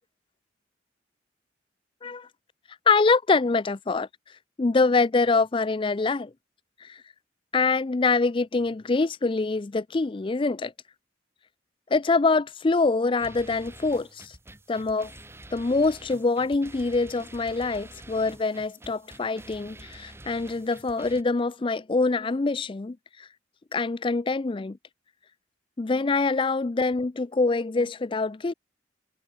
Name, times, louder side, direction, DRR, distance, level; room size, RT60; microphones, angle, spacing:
voice 1, 2.9-4.1 4.6-6.3 6.8-7.0 7.5-10.7 11.9-14.4 14.7-15.1 15.5-23.3 23.7-24.8 25.8-28.5, left 3 dB, 25° left, 0.4 m, -25 dB
sound 1, 13.2-21.2, right 1 dB, 15° right, 2.4 m, -47 dB
head